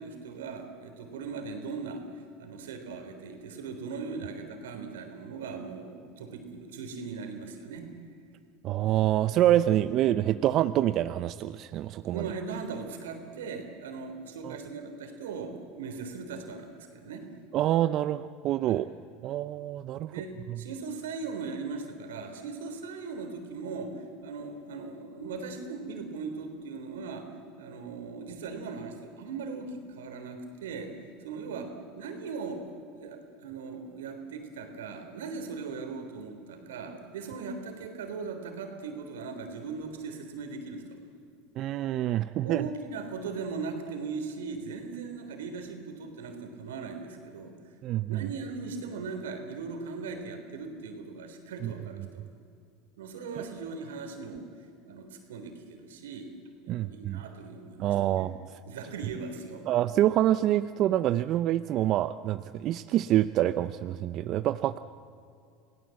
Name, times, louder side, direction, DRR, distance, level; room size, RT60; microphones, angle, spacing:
voice 1, 0.0-2.1 2.4-7.9 12.1-17.3 18.6-18.8 20.1-27.3 27.6-31.0 31.2-32.7 33.0-41.0 42.4-47.6 48.1-52.3 53.0-54.4 54.8-56.3 56.6-58.3 58.7-59.7, right 4 dB, 90° right, 6 dB, 3.6 m, -39 dB
voice 2, 8.6-12.3 14.4-14.6 17.5-18.8 19.2-20.1 20.5-20.6 41.6-42.6 47.8-48.2 51.6-51.7 56.7-57.2 57.8-58.4 59.7-64.8, right 13 dB, 50° right, 12 dB, 0.6 m, -26 dB
27.0 x 18.0 x 7.8 m, 2.4 s
supercardioid pair, 100°, 0 cm